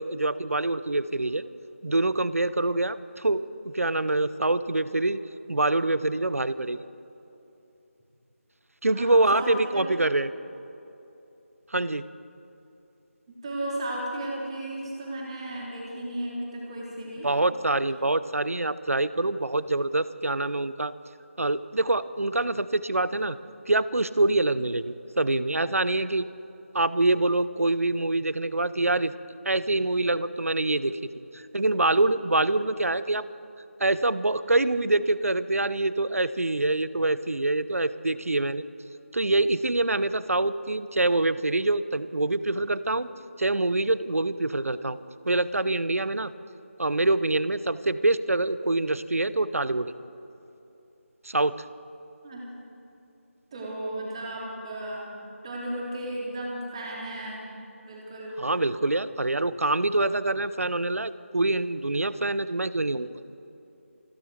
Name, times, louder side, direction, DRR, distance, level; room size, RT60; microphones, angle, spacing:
voice 1, 0.0-1.4 1.8-5.2 5.5-6.8 8.8-10.3 11.7-12.0 17.2-20.9 21.4-23.4 23.7-26.3 26.7-29.1 29.4-33.3 33.8-38.6 39.1-43.1 43.4-45.0 45.2-46.3 46.8-49.9 51.2-51.6 58.4-63.2, right 2 dB, 85° right, 16 dB, 0.7 m, -25 dB
voice 2, 8.9-9.8 13.4-17.3 52.2-52.4 53.5-55.1 55.4-57.4 57.9-58.4, right 1 dB, 25° right, -3 dB, 2.9 m, -34 dB
28.5 x 10.5 x 4.6 m, 2.9 s
figure-of-eight pair, 165°, 8 cm